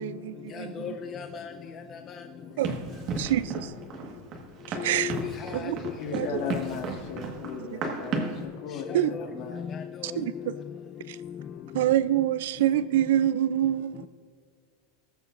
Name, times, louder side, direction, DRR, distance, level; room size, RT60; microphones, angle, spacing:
voice 1, 0.0-1.0 2.6-2.7 3.2-3.7 4.7-5.2 5.5-5.8 6.1-6.4 8.9-9.1 10.0-10.6 11.1-11.2 11.7-14.1, right 12 dB, 75° right, 17 dB, 0.4 m, -26 dB
voice 2, 0.5-1.5 4.8-5.7 6.2-6.5 8.9-9.3 9.5-10.2, left 8 dB, 25° left, 6 dB, 0.5 m, -36 dB
Run, 2.6-8.4, right 4 dB, 40° right, 1.5 m, -34 dB
voice 3, 6.0-9.8, left 6 dB, 60° left, 3 dB, 1.7 m, -37 dB
20.5 x 7.0 x 2.5 m, 2.1 s
supercardioid pair, 155°, 0 cm